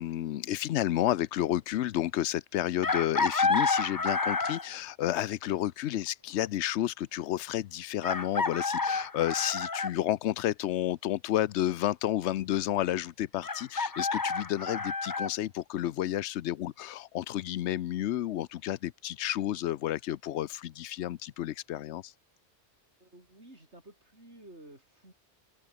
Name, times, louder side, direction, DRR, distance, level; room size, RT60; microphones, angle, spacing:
voice 1, 0.0-22.1, left 13 dB, 90° left, 0.9 m, -31 dB
Chicken rooster, 2.8-4.8 6.5-6.6 8.0-9.9 13.4-15.3, left 4 dB, 25° left, 0.6 m, -29 dB
voice 2, 23.0-25.1, right 1 dB, 80° right, 8.2 m, -53 dB
open air
omnidirectional pair, 1.1 m